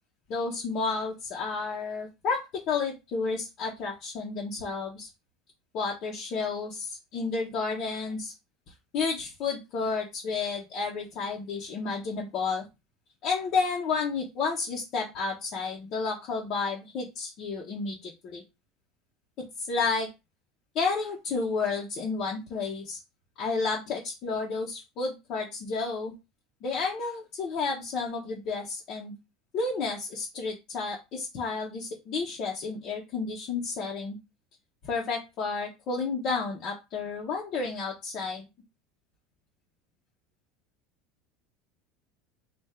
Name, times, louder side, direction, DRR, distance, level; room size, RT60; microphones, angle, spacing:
voice 1, 0.3-2.4 2.7-5.1 5.7-8.3 8.9-12.6 13.2-18.4 19.6-20.1 20.7-23.0 23.4-26.1 26.6-29.1 29.5-34.2 34.8-38.5, left 4 dB, 45° left, -2 dB, 0.9 m, -31 dB
3.6 x 2.5 x 4.3 m, 0.24 s
supercardioid pair, 155°, 0 cm